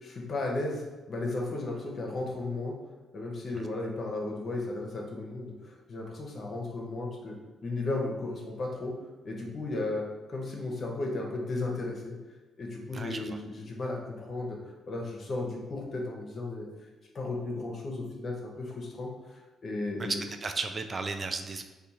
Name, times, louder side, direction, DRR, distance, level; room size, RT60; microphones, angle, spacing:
voice 1, 0.0-0.8 1.1-2.7 3.1-7.4 7.6-8.9 9.2-12.1 12.6-14.6 14.9-16.7 17.1-19.1 19.6-20.2, left 2 dB, 50° left, -1 dB, 0.8 m, -34 dB
voice 2, 12.9-13.4 20.0-21.6, right 4 dB, 40° right, 6 dB, 0.3 m, -34 dB
3.5 x 2.4 x 2.8 m, 1.2 s
hypercardioid pair, 50°, 0 cm